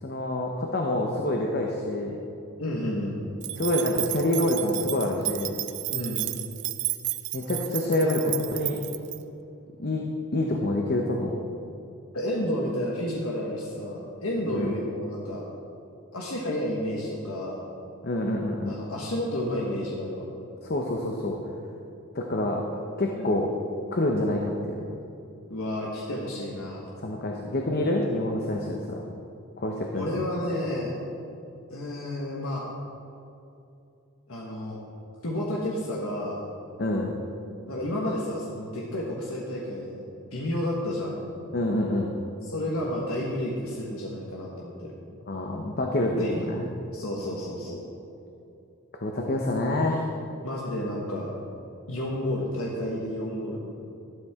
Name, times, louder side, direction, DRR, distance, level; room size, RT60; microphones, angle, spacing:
voice 1, 0.0-2.2 3.6-5.6 7.3-8.8 9.8-10.0 10.3-11.3 14.5-14.7 18.0-18.8 20.6-21.4 22.1-23.5 23.9-24.8 27.0-29.0 29.6-30.2 36.8-37.1 41.5-42.1 45.3-46.1 46.5-46.7 49.0-50.1, left 1 dB, 45° left, 1 dB, 0.9 m, -27 dB
voice 2, 2.6-3.2 5.9-6.3 12.1-15.4 16.1-17.7 18.7-20.3 23.1-23.4 25.5-26.9 29.9-30.9 31.7-32.6 34.3-34.8 35.2-36.5 37.7-40.0 40.3-41.3 42.4-44.9 46.2-46.5 46.9-47.8 50.4-51.3 51.9-53.6, left 1 dB, 70° left, -3 dB, 1.4 m, -31 dB
sound 1, 3.4-9.2, right 16 dB, 50° right, 0.5 m, -32 dB
13.0 x 12.5 x 3.6 m, 2.7 s
head